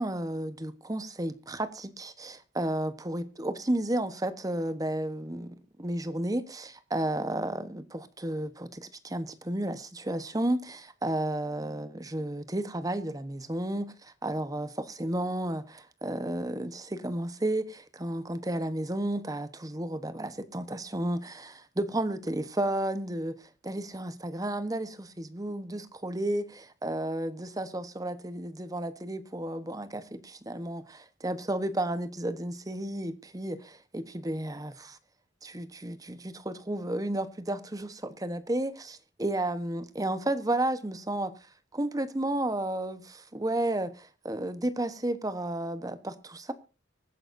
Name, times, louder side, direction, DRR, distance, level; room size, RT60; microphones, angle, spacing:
voice 1, 0.0-35.0 35.4-41.3 41.7-46.5, right 1 dB, 20° right, 1.1 m, -32 dB
24.0 x 9.8 x 2.7 m
head